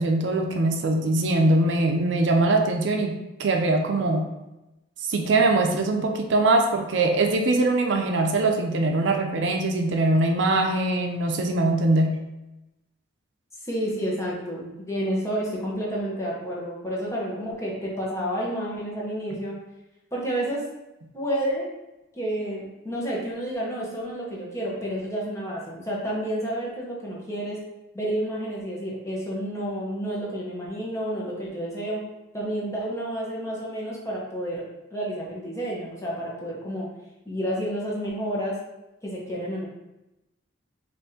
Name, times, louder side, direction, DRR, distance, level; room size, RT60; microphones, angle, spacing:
voice 1, 0.0-4.3 5.1-12.2, right 2 dB, 70° right, 3 dB, 0.5 m, -22 dB
voice 2, 13.6-19.5 20.1-20.6 21.1-21.7 22.1-27.6 27.9-32.0 32.3-34.6 34.9-36.9 37.2-38.6 39.0-39.7, equal, 15° left, -5 dB, 0.9 m, -30 dB
5.4 x 2.6 x 2.8 m, 0.97 s
head